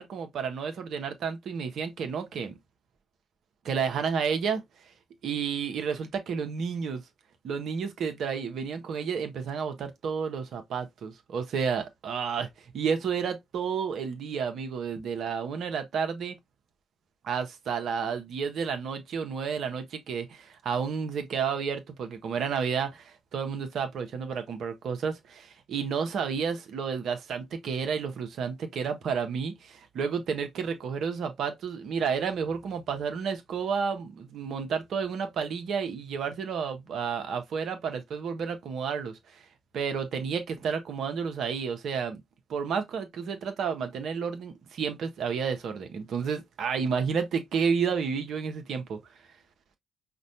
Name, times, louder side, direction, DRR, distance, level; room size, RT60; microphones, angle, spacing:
voice 1, 0.0-2.6 3.6-4.6 5.2-7.0 7.4-16.4 17.2-39.5 39.7-42.2 42.5-49.0, right 6 dB, 65° right, 0.7 m, -31 dB
5.1 x 2.2 x 2.6 m
hypercardioid pair, 40°, 0 cm